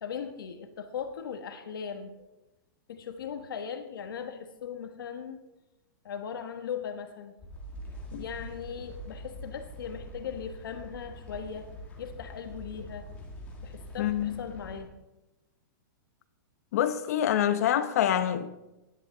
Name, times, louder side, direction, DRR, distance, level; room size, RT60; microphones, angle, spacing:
voice 1, 0.0-2.3 2.9-5.4 6.0-7.4 8.2-11.6 12.0-13.1 13.6-14.9, left 7 dB, 80° left, 1.4 m, -38 dB
sound 1, 7.4-14.8, equal, 10° left, 1.8 m, -44 dB
voice 2, 14.0-14.4 16.7-18.5, left 10 dB, 45° left, 0.9 m, -26 dB
17.0 x 10.5 x 3.9 m
supercardioid pair, 175°, 11 cm